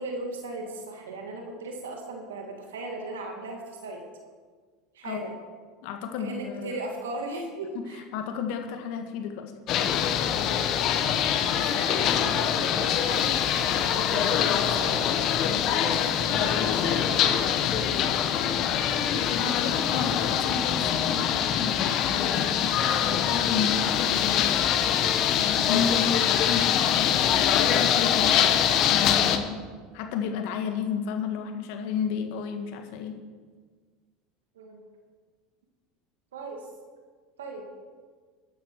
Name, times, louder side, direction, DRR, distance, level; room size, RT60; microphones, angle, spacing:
voice 1, 0.0-4.0 4.9-5.3 6.2-8.1 10.6-10.8 11.2-15.0 15.7-17.3 34.5-34.8 36.3-36.7 37.4-37.6, right 2 dB, 85° right, 2 dB, 2.0 m, -38 dB
voice 2, 5.8-6.8 7.9-9.5 19.3-22.7 23.0-27.4 27.8-28.5 28.7-29.6 29.9-33.2, left 7 dB, 70° left, 5 dB, 1.6 m, -32 dB
sound 1, 9.7-29.4, left 9 dB, 50° left, 1.1 m, -24 dB
13.0 x 11.0 x 4.7 m, 1.5 s
hypercardioid pair, 85°, 0 cm